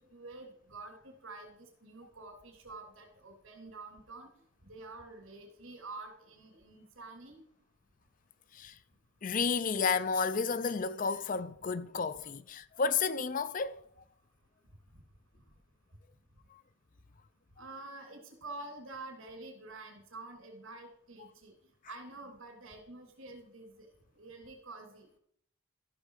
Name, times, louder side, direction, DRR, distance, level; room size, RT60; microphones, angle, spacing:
voice 1, 0.0-4.3 4.6-7.4 17.6-21.5 21.9-23.9 24.1-25.1, right 2 dB, 80° right, 3.2 m, -48 dB
voice 2, 9.2-13.8, left 5 dB, 40° left, 0.4 m, -31 dB
13.5 x 6.4 x 4.9 m
head